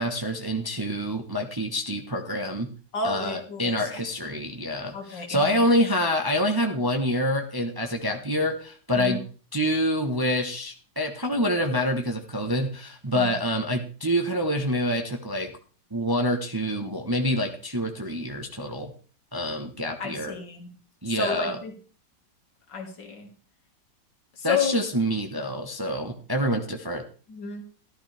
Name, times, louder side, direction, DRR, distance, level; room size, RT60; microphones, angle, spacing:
voice 1, 0.0-2.7 3.0-9.2 9.5-15.5 15.9-18.9 19.3-20.3 21.0-21.6 24.4-27.0, equal, 15° right, 4 dB, 0.8 m, -26 dB
voice 2, 2.9-4.0 4.9-5.6 8.9-9.2 13.1-13.4 20.0-20.7 21.1-21.7 22.7-23.3 24.4-24.8 27.3-27.6, left 5 dB, 75° left, 2 dB, 2.8 m, -31 dB
13.5 x 11.5 x 3.4 m, 0.40 s
omnidirectional pair, 1.9 m